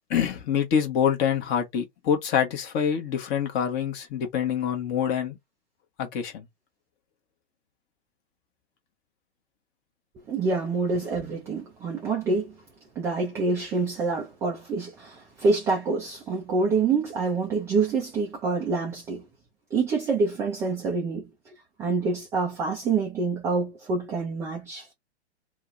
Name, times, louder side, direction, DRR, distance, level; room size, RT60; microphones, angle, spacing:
voice 1, 0.1-5.4 6.0-6.4, left 8 dB, 30° left, 0.9 m, -26 dB
voice 2, 10.3-12.6 13.0-19.2 19.7-21.5 21.8-24.9, right 4 dB, 10° right, 0.3 m, -26 dB
2.7 x 2.1 x 3.7 m
figure-of-eight pair, 115°, 34 cm